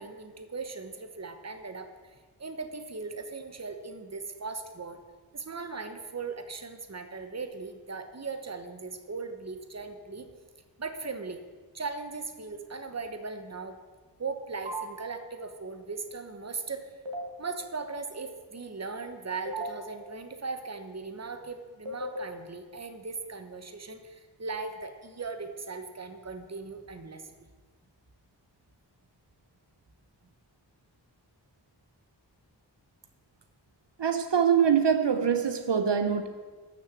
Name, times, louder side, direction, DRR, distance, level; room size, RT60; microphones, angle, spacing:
voice 1, 0.0-5.0 5.3-10.3 10.8-11.4 11.7-13.8 14.2-16.9 17.4-27.3, right 4 dB, 35° right, 8 dB, 1.1 m, -38 dB
sound 1, 14.7-14.8 17.1-17.2 19.5-19.7 21.9-22.2, right 1 dB, 85° right, 2.3 m, -34 dB
voice 2, 34.0-36.3, right 7 dB, 70° right, 7 dB, 0.9 m, -24 dB
13.0 x 6.7 x 7.5 m, 1.4 s
wide cardioid pair, 85°, 44 cm